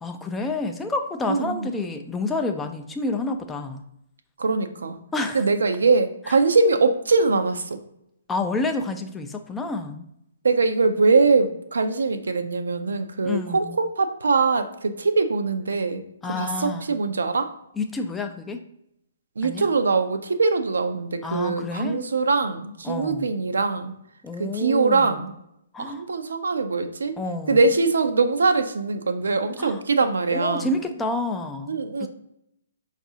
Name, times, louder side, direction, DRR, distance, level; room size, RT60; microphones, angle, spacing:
voice 1, 0.0-3.8 5.1-5.5 6.3-6.4 8.3-10.1 13.2-13.7 16.2-16.9 17.8-18.6 19.4-19.7 21.2-22.0 22.8-23.3 24.2-25.2 25.7-26.0 27.2-27.6 29.6-29.8 30.3-32.1, left 2 dB, 10° left, 5 dB, 0.3 m, -29 dB
voice 2, 1.2-1.7 4.4-5.0 5.3-7.8 10.4-17.5 19.4-23.9 24.4-25.3 25.8-27.2 27.5-30.7 31.7-32.1, right 4 dB, 70° right, 8 dB, 0.4 m, -22 dB
5.2 x 2.4 x 2.7 m, 0.79 s
figure-of-eight pair, 125°, 0 cm